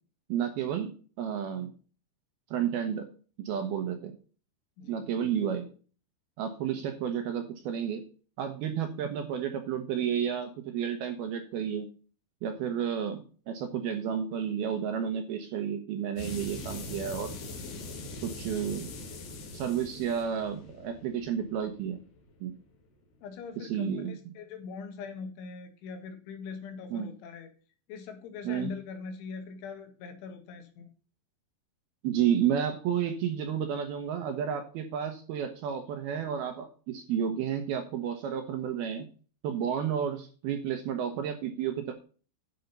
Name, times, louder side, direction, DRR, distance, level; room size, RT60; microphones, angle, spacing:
voice 1, 0.3-0.9 1.2-1.7 2.5-3.1 3.4-4.1 4.9-5.7 6.4-8.0 8.4-11.9 12.4-17.3 18.2-18.9 19.5-22.0 22.4-22.5 23.6-24.1 26.9-27.1 28.4-28.7 32.0-39.1 39.4-41.9, right 8 dB, 70° right, 6 dB, 2.5 m, -31 dB
sound 1, 16.2-22.6, left 2 dB, 55° left, 2.8 m, -42 dB
voice 2, 23.2-27.5 27.9-30.9, left 5 dB, 80° left, 6 dB, 4.0 m, -41 dB
11.0 x 5.7 x 5.4 m, 0.38 s
omnidirectional pair, 5.4 m